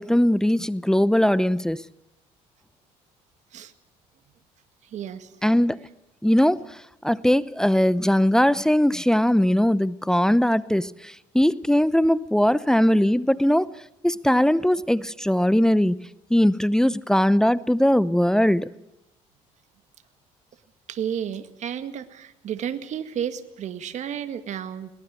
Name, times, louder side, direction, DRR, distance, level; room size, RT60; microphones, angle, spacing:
voice 1, 0.0-1.8 5.4-5.8 6.2-13.7 14.0-18.7, equal, 5° left, 0.7 m, -20 dB
voice 2, 4.8-5.4 20.9-24.9, right 9 dB, 55° right, 1.9 m, -32 dB
22.0 x 19.0 x 7.6 m
supercardioid pair, 75°, 14 cm